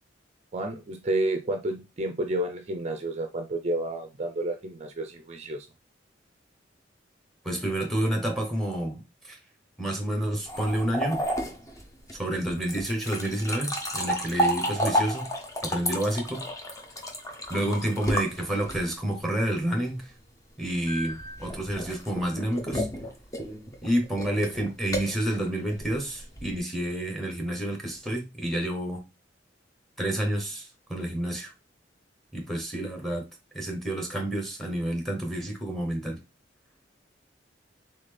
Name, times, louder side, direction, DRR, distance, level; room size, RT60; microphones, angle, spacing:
voice 1, 0.5-5.7, right 1 dB, 35° right, 0.4 m, -30 dB
voice 2, 7.4-9.4 9.8-11.2 12.1-15.3 15.6-16.4 17.5-20.1 20.6-22.9 23.8-29.0 30.0-31.5 32.3-33.2 33.5-36.2, right 1 dB, ahead, 1.0 m, -29 dB
sound 1, 10.5-19.1 20.9-26.6, equal, 15° left, 0.7 m, -32 dB
4.1 x 3.6 x 3.3 m
head